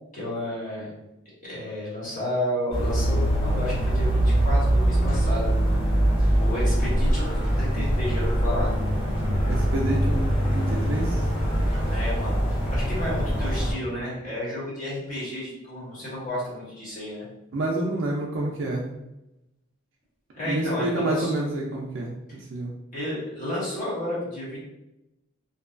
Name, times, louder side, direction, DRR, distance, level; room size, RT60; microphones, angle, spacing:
voice 1, 0.1-0.9 1.4-5.5 5.8-6.0 6.4-8.7 11.9-12.4 12.7-17.3 20.3-21.3 22.9-24.6, left 1 dB, 35° left, -8 dB, 1.2 m, -31 dB
sound 1, 2.7-13.7, right 1 dB, 85° left, 1.1 m, -23 dB
voice 2, 9.4-11.2 17.5-18.9 20.4-22.7, right 2 dB, 65° right, -2 dB, 0.4 m, -28 dB
2.7 x 2.2 x 2.4 m, 0.91 s
head